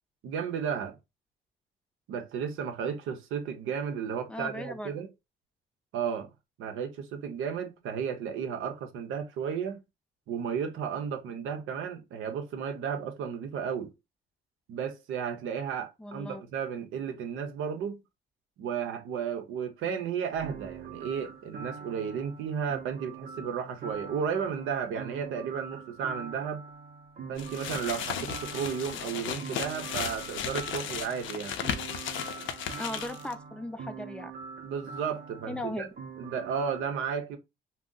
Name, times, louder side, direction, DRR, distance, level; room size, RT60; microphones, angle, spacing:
voice 1, 0.2-1.0 2.1-5.1 5.9-6.3 6.6-9.8 10.3-13.9 14.7-18.0 18.6-26.6 27.3-31.6 34.6-35.9 36.2-37.4, right 7 dB, 90° right, 0.6 m, -33 dB
voice 2, 4.3-4.9 16.0-16.4 32.8-34.3 35.5-35.9, left 1 dB, 5° left, 0.4 m, -37 dB
sound 1, 20.3-36.8, right 5 dB, 50° right, 0.5 m, -44 dB
sound 2, 27.4-33.3, left 8 dB, 75° left, 0.5 m, -35 dB
2.6 x 2.0 x 3.7 m
cardioid pair, 90°, 20 cm